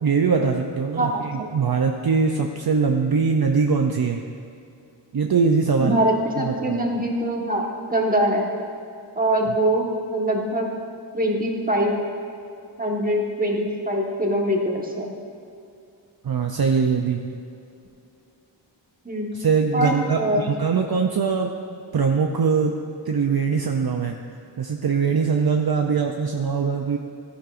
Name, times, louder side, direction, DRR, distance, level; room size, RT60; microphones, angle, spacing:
voice 1, 0.0-4.3 5.1-6.0 6.4-6.8 16.2-17.3 19.3-21.6 21.9-22.8 23.1-24.2 24.6-27.0, right 5 dB, 55° right, 3 dB, 0.6 m, -22 dB
voice 2, 1.0-1.5 5.8-7.6 7.9-8.5 9.2-10.7 11.1-12.0 12.8-15.1 19.0-19.3 19.7-20.5, right 1 dB, 20° right, -1 dB, 1.4 m, -23 dB
14.0 x 10.5 x 2.5 m, 2.6 s
wide cardioid pair, 60°, 44 cm